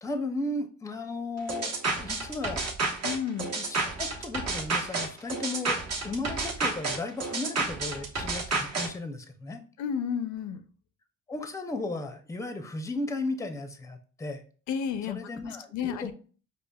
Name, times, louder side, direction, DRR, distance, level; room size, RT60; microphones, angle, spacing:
voice 1, 0.0-1.7 2.0-2.6 3.6-5.8 6.0-9.6 11.3-14.4 15.1-16.1, left 2 dB, 10° left, 0.5 m, -35 dB
sound 1, 1.5-8.9, right 3 dB, 60° right, 1.1 m, -30 dB
voice 2, 3.0-3.5 9.8-10.6 14.7-15.2 15.7-16.1, left 7 dB, 75° left, 0.5 m, -31 dB
4.9 x 2.4 x 2.2 m
cardioid pair, 90°, 30 cm